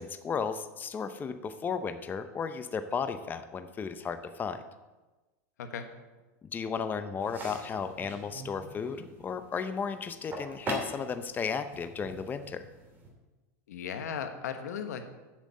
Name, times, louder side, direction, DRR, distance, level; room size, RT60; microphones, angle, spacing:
voice 1, 0.0-4.6 6.5-12.7, left 6 dB, 20° left, 10 dB, 0.6 m, -34 dB
sound 1, 7.2-13.1, right 1 dB, 20° right, 2.8 m, -42 dB
voice 2, 13.7-15.0, left 7 dB, 90° left, 7 dB, 1.3 m, -36 dB
7.4 x 7.4 x 8.4 m, 1.2 s
supercardioid pair, 120°, 9 cm